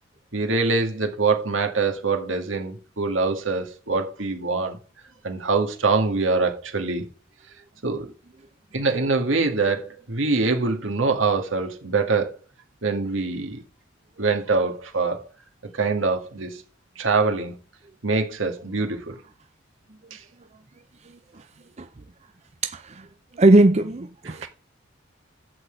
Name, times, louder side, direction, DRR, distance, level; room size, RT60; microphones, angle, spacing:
voice 1, 0.3-4.8 5.2-7.0 7.8-8.1 8.7-12.4 12.8-13.6 14.2-15.3 15.7-16.6 17.0-17.5 18.0-19.2 20.1-20.2 24.3-24.5, right 3 dB, 85° right, 1.9 m, -24 dB
voice 2, 22.6-23.1 23.3-24.5, right 2 dB, 35° right, 0.6 m, -19 dB
12.0 x 4.1 x 7.9 m
head